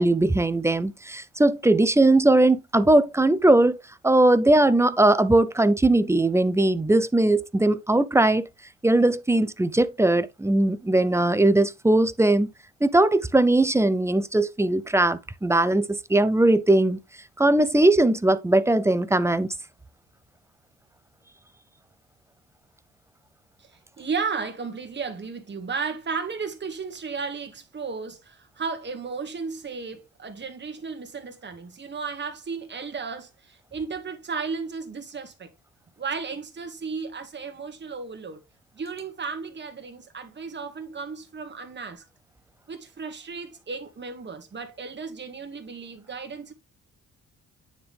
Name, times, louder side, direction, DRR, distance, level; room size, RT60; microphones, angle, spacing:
voice 1, 0.0-8.5 8.8-12.5 12.8-17.0 17.4-19.5, right 2 dB, 10° right, 0.6 m, -20 dB
voice 2, 23.6-35.5 36.0-38.4 38.7-42.0 42.7-46.5, right 5 dB, 35° right, 1.9 m, -34 dB
9.5 x 3.7 x 3.4 m
cardioid pair, 90°, 30 cm